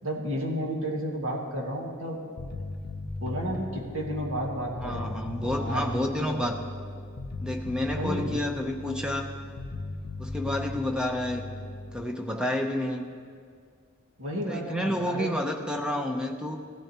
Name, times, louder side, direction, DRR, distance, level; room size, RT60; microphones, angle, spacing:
voice 1, 0.0-2.2 3.2-5.1 5.6-6.4 8.0-8.4 14.2-15.3, right 1 dB, 85° right, -1 dB, 1.8 m, -32 dB
Bass guitar, 2.4-12.0, left 2 dB, 45° left, 0.6 m, -37 dB
voice 2, 4.8-6.6 7.4-9.3 10.2-11.5 11.9-13.0 14.5-16.6, left 1 dB, 5° right, 3 dB, 0.7 m, -30 dB
16.5 x 12.5 x 2.9 m, 2.1 s
head